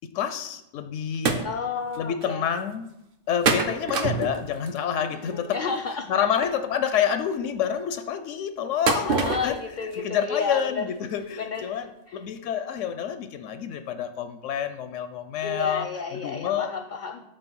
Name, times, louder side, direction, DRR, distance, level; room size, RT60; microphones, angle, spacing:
voice 1, 0.0-1.5 2.0-2.9 3.3-5.6 5.9-16.7, left 8 dB, 85° left, 10 dB, 0.9 m, -28 dB
sound 1, 1.3-1.5 1.9-2.2 3.4-4.8 6.4-6.5 8.9-9.6 9.9-10.0 10.6-10.7 11.2-11.3 11.6-11.7, right 5 dB, 55° right, 0.8 m, -25 dB
voice 2, 1.4-2.5 5.2-6.1 9.0-10.8 11.4-11.8 12.1-12.2 15.4-17.2, left 5 dB, 55° left, 6 dB, 0.6 m, -31 dB
6.4 x 4.2 x 6.2 m, 0.85 s
omnidirectional pair, 1.2 m